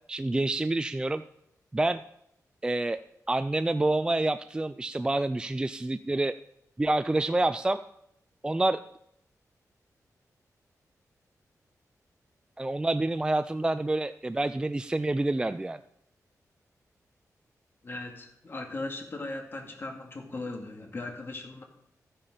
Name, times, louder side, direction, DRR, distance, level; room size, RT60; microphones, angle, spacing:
voice 1, 0.1-1.2 1.7-2.0 2.6-3.0 3.3-6.3 6.8-7.8 8.4-8.8 12.6-15.8, right 2 dB, 15° right, 11 dB, 0.4 m, -27 dB
voice 2, 17.8-21.6, left 2 dB, 40° left, 2 dB, 2.3 m, -38 dB
14.0 x 10.0 x 5.1 m, 0.75 s
wide cardioid pair, 140°, 6 cm